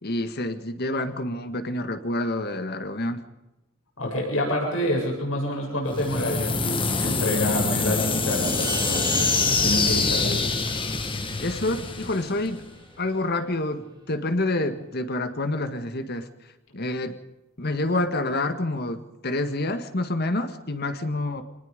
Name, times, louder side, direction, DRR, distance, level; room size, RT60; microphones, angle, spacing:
voice 1, 0.0-3.2 11.4-12.6 13.0-16.3 16.7-17.2 17.6-21.4, left 2 dB, 50° left, 9 dB, 1.8 m, -28 dB
voice 2, 4.0-10.4, left 1 dB, 70° left, -1 dB, 7.5 m, -27 dB
sound 1, 5.9-12.8, left 4 dB, 25° left, 1.6 m, -26 dB
sound 2, 6.4-13.1 13.4-13.5, right 2 dB, 20° right, 3.3 m, -35 dB
25.5 x 19.5 x 5.3 m, 0.97 s
head